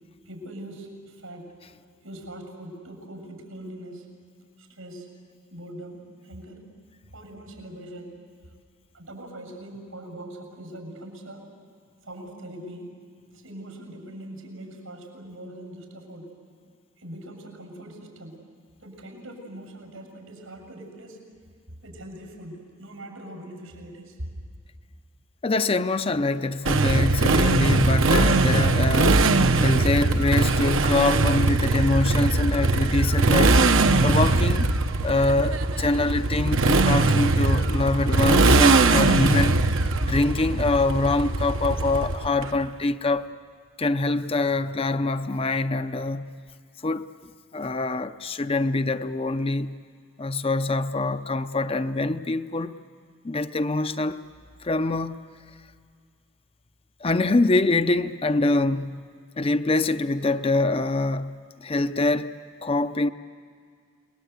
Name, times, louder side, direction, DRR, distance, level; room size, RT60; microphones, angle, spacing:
voice 1, 0.2-1.5 2.0-4.1 4.6-5.1 5.5-6.7 7.1-8.2 8.9-11.5 12.0-13.0 13.3-16.3 17.0-18.4 18.8-21.2 21.8-24.2, right 1 dB, 90° right, 7.2 m, -42 dB
voice 2, 25.4-33.7 34.0-34.7 35.0-39.6 40.0-43.3 43.8-46.3 46.8-47.1 47.5-49.8 50.2-52.7 53.2-54.2 54.6-55.2 57.0-59.1 59.4-63.1, left 2 dB, 30° left, 0.6 m, -24 dB
Motorcycle, 26.7-42.4, right 3 dB, 70° right, 1.0 m, -21 dB
29.5 x 21.0 x 8.2 m
head